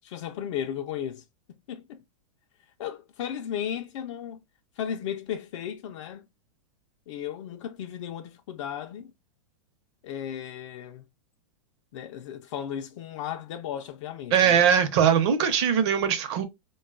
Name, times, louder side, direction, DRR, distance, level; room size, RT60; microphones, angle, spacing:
voice 1, 0.0-1.2 1.7-2.0 2.8-4.4 4.8-6.2 7.1-9.1 10.0-11.0 11.9-14.7, left 9 dB, 60° left, 0.4 m, -35 dB
voice 2, 14.3-16.4, right 8 dB, 55° right, 0.7 m, -21 dB
3.6 x 2.3 x 2.3 m
hypercardioid pair, 135°, 17 cm